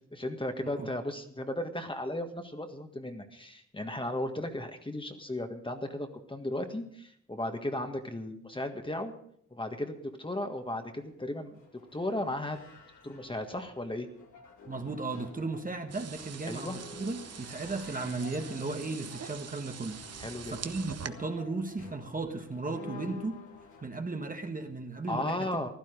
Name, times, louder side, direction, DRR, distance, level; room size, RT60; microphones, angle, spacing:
voice 1, 0.1-9.1 9.5-11.6 11.9-12.6 13.0-14.1 16.5-16.8 20.2-20.5 25.1-25.7, left 1 dB, 15° left, 5 dB, 1.6 m, -35 dB
sound 1, 10.5-23.9, left 3 dB, 85° left, 3.0 m, -51 dB
voice 2, 14.7-23.4 23.8-25.7, right 3 dB, 30° right, 5 dB, 1.4 m, -36 dB
sound 2, 15.9-21.1, right 7 dB, 60° right, 0.9 m, -44 dB
15.5 x 12.0 x 5.1 m, 0.70 s
cardioid pair, 80°, 29 cm